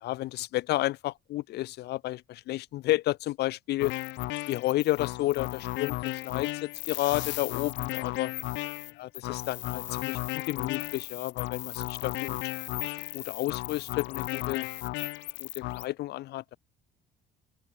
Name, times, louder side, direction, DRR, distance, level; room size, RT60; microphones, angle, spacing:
voice 1, 0.0-3.9 4.5-8.3 9.0-12.4 13.1-14.7 15.4-16.6, left 16 dB, 65° left, 3.0 m, -31 dB
sound 1, 3.8-15.9, left 19 dB, 85° left, 3.8 m, -35 dB
open air
cardioid pair, 175°, 18 cm